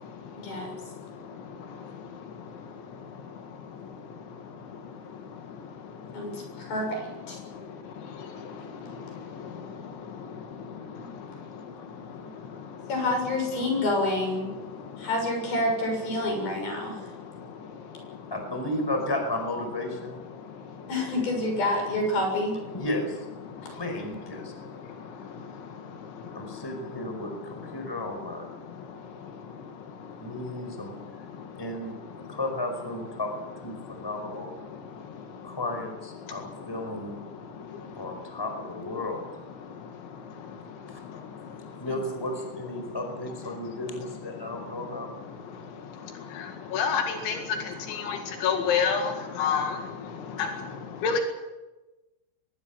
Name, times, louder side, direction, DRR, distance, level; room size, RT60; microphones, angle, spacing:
voice 1, 0.3-0.7 6.1-7.4 12.9-14.5 15.0-17.0 20.9-22.6 41.9-42.0, left 1 dB, 55° left, 2 dB, 8.7 m, -28 dB
voice 2, 8.3-9.4 11.5-12.8 18.3-20.2 22.7-23.2 23.7-24.5 26.3-28.5 30.2-30.9 31.6-31.9 32.3-34.5 35.4-37.2 38.0-39.3 40.9-41.0 41.8-45.1, left 1 dB, 5° left, 5 dB, 4.6 m, -34 dB
voice 3, 46.7-47.4 48.1-48.2 48.4-49.1 49.4-49.7 51.0-51.2, left 6 dB, 85° left, 4 dB, 4.4 m, -25 dB
24.0 x 20.5 x 7.3 m, 1.1 s
omnidirectional pair, 5.2 m